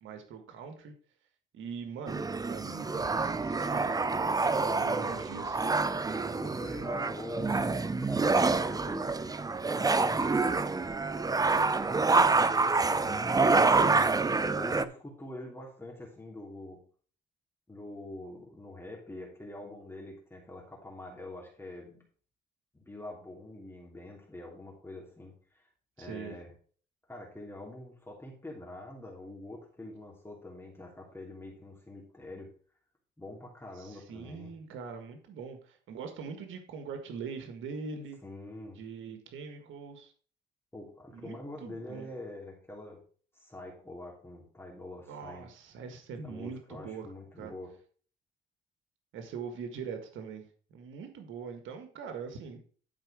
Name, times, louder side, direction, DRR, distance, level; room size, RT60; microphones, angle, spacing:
voice 1, 0.0-0.9 1.5-4.0 4.3-5.7 26.0-26.4 33.7-38.2 38.7-40.1 41.1-42.1 45.1-47.1 47.4-47.5 49.1-52.6, right 5 dB, 80° right, 7 dB, 1.6 m, -42 dB
sound 1, 2.1-14.8, right 3 dB, 20° right, 0.6 m, -27 dB
voice 2, 4.8-5.2 6.4-8.3 8.6-9.1 9.6-10.8 12.0-12.4 12.8-13.8 14.5-16.8 17.7-22.0 22.7-25.7 26.0-26.5 27.1-32.5 33.2-34.5 38.2-38.8 40.7-43.0 43.3-45.5 46.2-47.7, left 1 dB, 10° left, -2 dB, 3.0 m, -45 dB
12.0 x 4.8 x 4.9 m, 0.43 s
cardioid pair, 90°, 20 cm